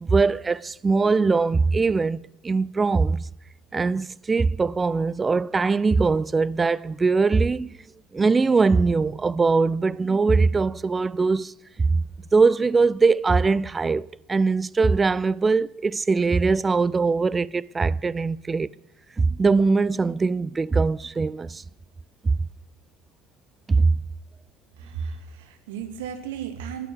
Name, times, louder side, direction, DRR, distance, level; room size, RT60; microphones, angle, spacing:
voice 1, 0.0-3.3 3.7-7.7 8.1-12.0 12.3-18.7 19.2-21.6 23.7-24.0, right 4 dB, 25° right, 0.4 m, -21 dB
voice 2, 24.8-26.9, right 7 dB, 70° right, 2.0 m, -34 dB
12.0 x 11.0 x 7.9 m
figure-of-eight pair, 60°, 0 cm